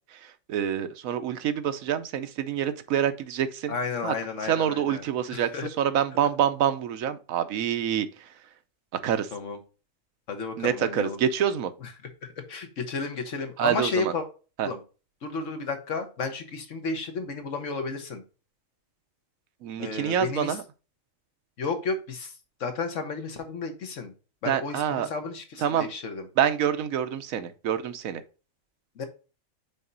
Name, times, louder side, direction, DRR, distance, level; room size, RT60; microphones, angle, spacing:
voice 1, 0.1-3.8 4.0-4.1 4.4-8.3 8.9-9.3 10.6-11.7 13.6-14.1 14.6-14.7 19.6-20.6 24.5-25.1 25.6-25.9 26.4-28.2, right 9 dB, 85° right, 1.1 m, -27 dB
voice 2, 3.7-5.0 5.3-5.7 9.3-9.6 10.3-11.2 12.2-14.2 14.6-14.8 15.2-18.2 19.8-20.5 21.6-22.3 22.6-24.1 24.4-26.2 29.0-29.1, left 4 dB, 65° left, 1.4 m, -32 dB
5.8 x 4.2 x 3.9 m
omnidirectional pair, 1.4 m